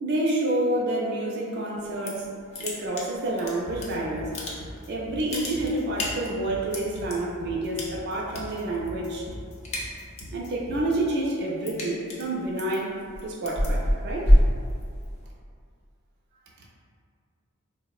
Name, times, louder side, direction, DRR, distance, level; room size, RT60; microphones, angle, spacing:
voice 1, 0.0-2.3 2.6-4.3 4.9-9.3 10.3-14.3 16.6-16.7, right 1 dB, 50° right, -3 dB, 0.3 m, -28 dB
sound 1, 1.8-2.3 2.5-3.9 4.2-4.8 5.1-7.1 7.8-8.4 8.7-9.0 9.3-10.4 10.8-15.3, equal, 30° left, 0.4 m, -25 dB
sound 2, 3.7-11.0, equal, 85° left, 0.6 m, -41 dB
3.4 x 2.0 x 2.3 m, 2.2 s
head